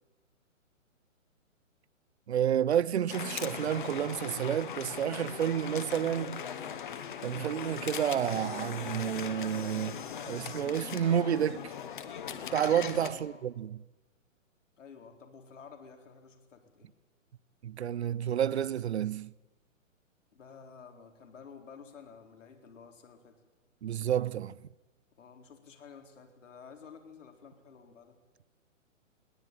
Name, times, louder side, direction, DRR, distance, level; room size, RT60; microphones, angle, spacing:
voice 1, 2.3-6.5 7.2-11.7 12.5-13.8 17.6-19.3 23.8-24.6, right 9 dB, 55° right, 0.7 m, -30 dB
sound 1, 3.1-13.1, left 8 dB, 40° left, 1.4 m, -40 dB
voice 2, 13.1-13.4 14.8-16.9 20.3-23.3 25.2-28.2, left 6 dB, 65° left, 4.2 m, -52 dB
21.0 x 18.5 x 9.1 m
hypercardioid pair, 175°, 39 cm